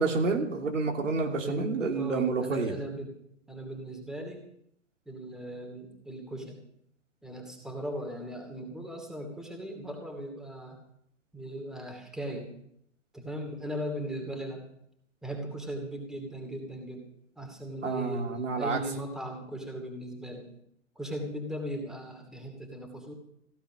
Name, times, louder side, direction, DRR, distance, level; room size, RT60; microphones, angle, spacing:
voice 1, 0.0-2.7 17.8-18.8, right 4 dB, 85° right, 3 dB, 2.9 m, -29 dB
voice 2, 1.2-3.2 3.5-4.4 5.1-6.7 7.2-10.8 11.3-12.5 13.1-14.6 15.2-17.0 17.4-20.5 21.0-23.1, equal, ahead, 3 dB, 2.4 m, -38 dB
15.5 x 11.0 x 6.1 m, 0.73 s
hypercardioid pair, 130°, 37 cm